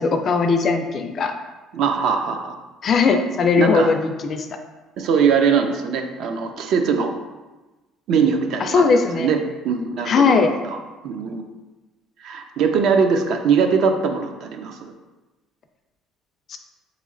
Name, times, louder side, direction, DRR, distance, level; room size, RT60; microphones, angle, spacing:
voice 1, 0.0-1.3 2.8-4.5 8.6-9.3 10.1-10.5 16.5-16.6, left 5 dB, 35° left, 6 dB, 0.3 m, -19 dB
voice 2, 1.7-2.6 3.6-3.9 5.0-7.2 8.1-8.8 9.2-10.2 10.6-10.8 11.0-11.4 12.2-14.9, right 6 dB, 55° right, 5 dB, 0.4 m, -21 dB
3.8 x 3.1 x 3.7 m, 1.2 s
cardioid pair, 155°, 0 cm